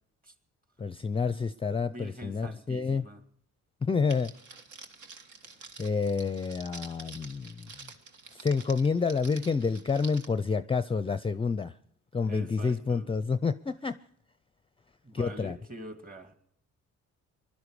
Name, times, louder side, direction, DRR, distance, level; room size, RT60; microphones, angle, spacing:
voice 1, 0.8-3.0 3.8-4.3 5.8-7.7 8.3-11.7 12.1-14.0 15.1-15.6, left 5 dB, 20° left, 13 dB, 0.5 m, -29 dB
voice 2, 1.8-3.2 12.3-13.1 15.0-16.3, right 1 dB, 30° right, 7 dB, 2.5 m, -44 dB
Crackle, 4.1-10.3, right 4 dB, 75° right, 1.8 m, -48 dB
20.5 x 12.0 x 4.9 m, 0.69 s
cardioid pair, 90°, 30 cm